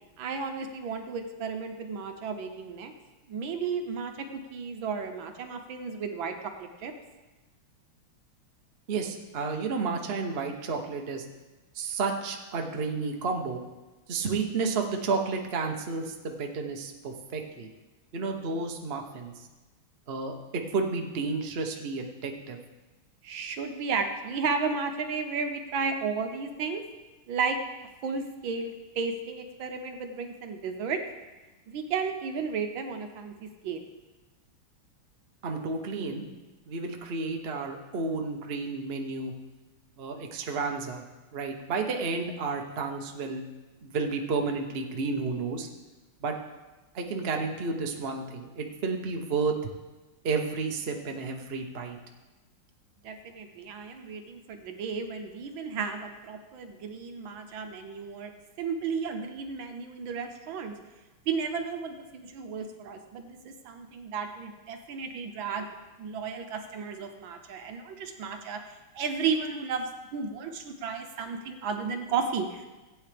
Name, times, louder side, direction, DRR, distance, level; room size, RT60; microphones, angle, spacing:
voice 1, 0.2-2.9 3.3-6.3 6.6-6.9 23.2-26.8 27.3-27.6 28.0-31.0 31.7-33.8 53.0-58.3 58.6-60.7 61.3-65.7 66.0-68.6 68.9-72.7, right 5 dB, 70° right, 6 dB, 1.5 m, -33 dB
voice 2, 8.9-11.3 11.7-13.6 14.1-17.7 18.1-19.5 20.1-22.6 35.4-36.3 36.7-39.3 40.0-41.0 41.3-43.4 43.8-45.7 46.2-46.4 46.9-49.5 50.2-52.0, right 4 dB, 45° right, 3 dB, 0.8 m, -31 dB
15.5 x 8.9 x 3.4 m, 1.2 s
omnidirectional pair, 2.4 m